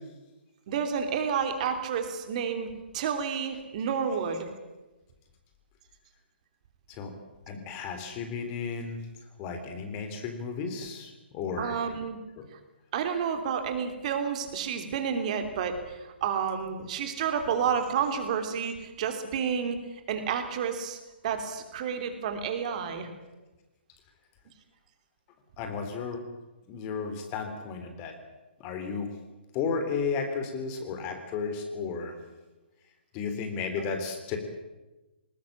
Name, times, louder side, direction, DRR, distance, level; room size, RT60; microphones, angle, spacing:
voice 1, 0.7-2.7 2.9-4.5 11.6-12.2 12.9-19.8 20.1-21.0 21.2-23.1, right 7 dB, 40° right, 6 dB, 3.1 m, -30 dB
voice 2, 7.5-9.0 9.4-11.8 12.4-12.5 25.6-26.2 26.7-28.2 28.6-29.1 29.5-32.1 33.1-34.4, left 5 dB, 25° left, 6 dB, 3.5 m, -33 dB
20.0 x 20.0 x 8.7 m, 1.1 s
figure-of-eight pair, 130°, 6 cm